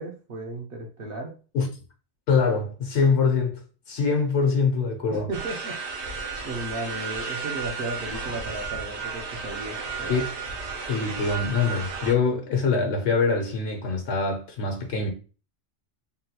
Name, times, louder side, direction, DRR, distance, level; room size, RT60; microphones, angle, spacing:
voice 1, 0.0-1.3 5.1-6.0 6.4-10.2, right 2 dB, 60° right, 0.8 m, -35 dB
voice 2, 2.3-3.6 3.9-5.3 10.1-10.3 10.9-15.1, left 4 dB, 80° left, 1.0 m, -24 dB
sound 1, 5.3-12.1, right 5 dB, 80° right, 1.1 m, -33 dB
3.7 x 2.2 x 2.8 m
omnidirectional pair, 1.2 m